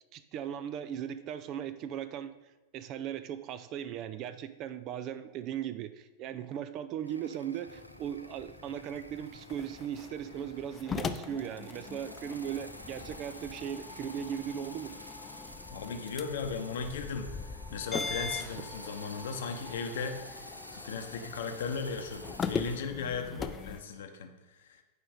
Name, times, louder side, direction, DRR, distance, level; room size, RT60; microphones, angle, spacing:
voice 1, 0.1-2.3 2.7-14.9, right 9 dB, 35° right, 12 dB, 0.4 m, -38 dB
sound 1, 7.0-24.0, equal, 90° left, 0.3 m, -50 dB
sound 2, 7.7-23.8, left 5 dB, 20° left, 0.4 m, -41 dB
sound 3, 9.7-21.1, right 1 dB, 15° right, 1.6 m, -57 dB
voice 2, 15.7-20.4 20.7-24.8, left 5 dB, 60° left, 6 dB, 0.8 m, -37 dB
8.1 x 4.9 x 5.1 m, 1.1 s
figure-of-eight pair, 90°, 0 cm